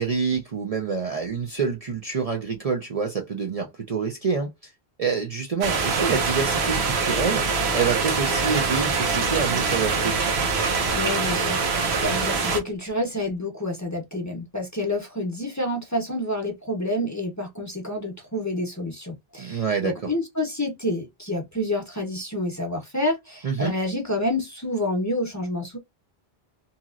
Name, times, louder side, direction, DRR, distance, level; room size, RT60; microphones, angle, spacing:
voice 1, 0.0-4.7 5.0-10.2 19.4-19.9 23.4-23.7, right 5 dB, 45° right, 0.6 m, -27 dB
sound 1, 5.6-12.6, right 4 dB, 85° right, 1.0 m, -24 dB
voice 2, 10.9-25.8, left 1 dB, 20° left, 0.7 m, -28 dB
2.9 x 2.8 x 2.4 m
omnidirectional pair, 1.0 m